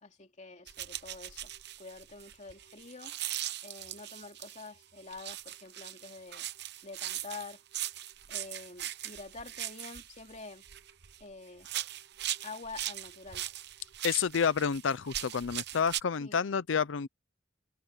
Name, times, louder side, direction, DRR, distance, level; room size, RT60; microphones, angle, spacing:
voice 1, 0.0-1.5 1.8-3.2 3.6-6.5 6.8-7.6 8.3-10.6 11.2-11.7 12.4-13.5 16.2-16.3, left 3 dB, 40° left, 2.9 m, -47 dB
sound 1, 0.7-4.7 5.1-11.2 11.6-16.0, right 13 dB, 60° right, 0.9 m, -40 dB
voice 2, 14.0-17.1, left 6 dB, 85° left, 0.5 m, -29 dB
head